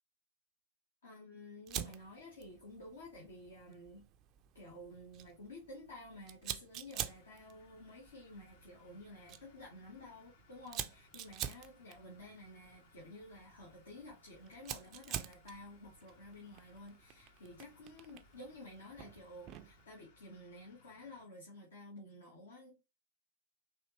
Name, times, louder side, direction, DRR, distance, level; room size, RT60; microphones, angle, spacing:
voice 1, 1.0-4.1 4.5-22.8, left 1 dB, 70° left, 1.2 m, -52 dB
Fire, 1.7-19.8, right 11 dB, 35° right, 0.4 m, -48 dB
sound 1, 6.9-21.2, left 4 dB, 55° left, 0.9 m, -67 dB
4.2 x 2.8 x 2.9 m
figure-of-eight pair, 100°, 0 cm